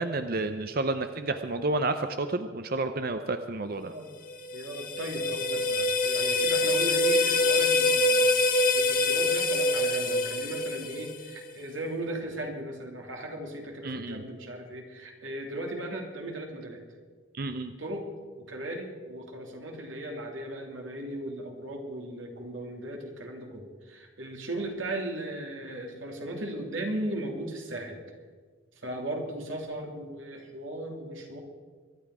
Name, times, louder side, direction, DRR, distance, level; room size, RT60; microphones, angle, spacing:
voice 1, 0.0-3.9 13.8-14.2 17.3-17.7, right 2 dB, 50° right, 8 dB, 0.7 m, -30 dB
voice 2, 3.8-4.1 4.5-16.8 17.8-18.1 18.4-28.0 28.7-31.4, right 1 dB, 85° right, 1 dB, 2.9 m, -37 dB
sound 1, 4.3-11.4, left 2 dB, 45° left, 1.2 m, -25 dB
23.5 x 10.5 x 4.9 m, 1.5 s
head